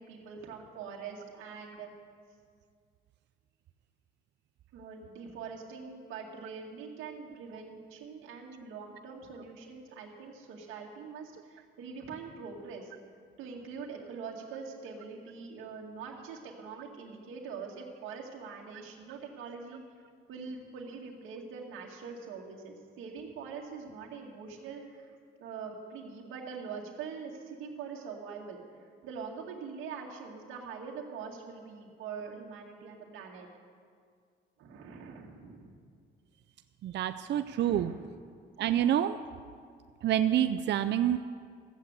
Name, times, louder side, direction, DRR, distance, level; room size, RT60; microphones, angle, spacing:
voice 1, 0.0-1.9 4.7-12.9 13.4-19.8 20.3-28.6 29.0-33.5 34.6-35.8 37.5-38.0, right 5 dB, 90° right, -1 dB, 2.1 m, -43 dB
voice 2, 36.8-37.9 38.6-39.2 40.0-41.2, right 11 dB, 60° right, 10 dB, 0.5 m, -27 dB
14.5 x 7.6 x 8.1 m, 2.1 s
cardioid pair, 90°, 20 cm